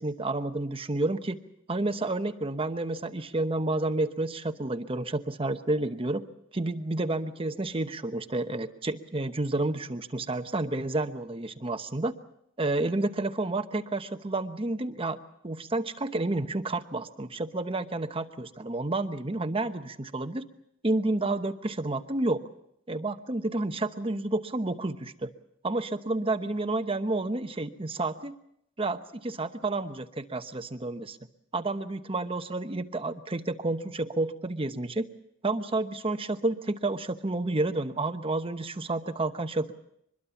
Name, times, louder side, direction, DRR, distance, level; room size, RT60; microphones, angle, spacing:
voice 1, 0.0-1.4 1.7-6.2 6.5-12.1 12.6-15.2 15.4-20.4 20.8-22.4 22.9-25.3 25.6-28.4 28.8-31.2 31.5-35.1 35.4-39.7, right 2 dB, 30° right, 9 dB, 1.0 m, -30 dB
24.0 x 21.5 x 7.1 m, 0.74 s
head